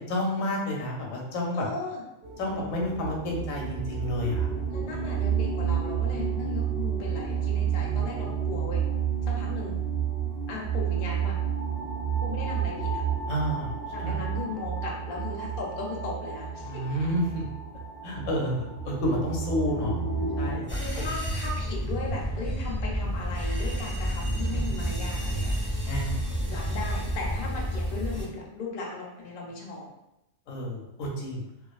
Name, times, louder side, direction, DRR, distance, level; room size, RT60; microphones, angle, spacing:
voice 1, 0.1-1.7 2.4-4.5 7.8-8.2 13.3-14.2 16.6-17.4 18.0-20.0 20.4-21.1 24.5-24.7 25.9-26.2 30.5-31.4, equal, 75° left, -1 dB, 1.0 m, -30 dB
voice 2, 1.5-2.0 4.7-8.8 9.2-9.8 10.5-11.4 12.2-13.0 13.9-16.8 20.7-25.5 26.5-29.9, left 3 dB, 60° left, -2 dB, 0.6 m, -37 dB
sound 1, 2.2-20.6, right 7 dB, 55° right, 0.8 m, -30 dB
sound 2, 20.7-28.2, equal, 10° right, 0.5 m, -30 dB
2.4 x 2.3 x 2.3 m, 0.87 s
omnidirectional pair, 1.4 m